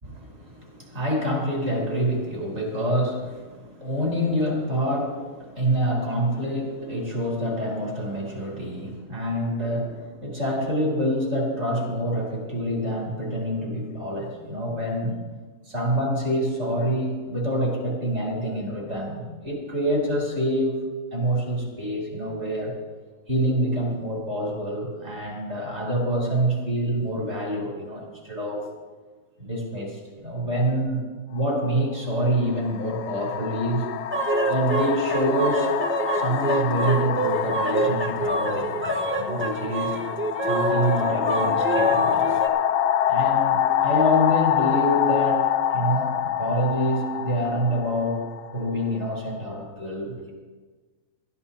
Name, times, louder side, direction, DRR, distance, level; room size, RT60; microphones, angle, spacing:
voice 1, 0.0-15.2 15.7-20.8 21.1-22.8 23.3-28.6 29.4-31.0 31.3-33.8 34.5-35.7 36.1-40.0 40.5-42.3 43.1-45.5 45.7-48.2 48.5-50.3, equal, 40° right, -2 dB, 4.3 m, -26 dB
sound 1, 31.4-31.6 32.5-49.2, left 10 dB, 90° left, 1.3 m, -26 dB
sound 2, 34.1-42.5, right 2 dB, 15° right, 0.5 m, -26 dB
21.5 x 14.0 x 2.9 m, 1.4 s
omnidirectional pair, 1.7 m